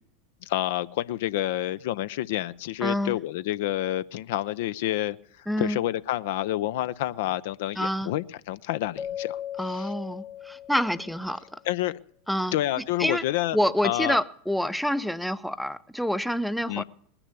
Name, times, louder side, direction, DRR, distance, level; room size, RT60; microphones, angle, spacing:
voice 1, 0.4-9.4 9.8-9.9 11.7-12.0 12.5-13.6 13.8-14.2 16.7-16.8, left 14 dB, 60° left, 16 dB, 0.5 m, -28 dB
voice 2, 2.8-3.2 5.5-5.8 7.8-8.1 9.6-11.6 12.3-12.6 13.0-13.2 13.5-16.8, equal, ahead, 14 dB, 0.7 m, -27 dB
Keyboard (musical), 9.0-11.4, left 10 dB, 30° left, 1.0 m, -37 dB
19.5 x 9.9 x 6.8 m, 0.65 s
hypercardioid pair, 85°, 0 cm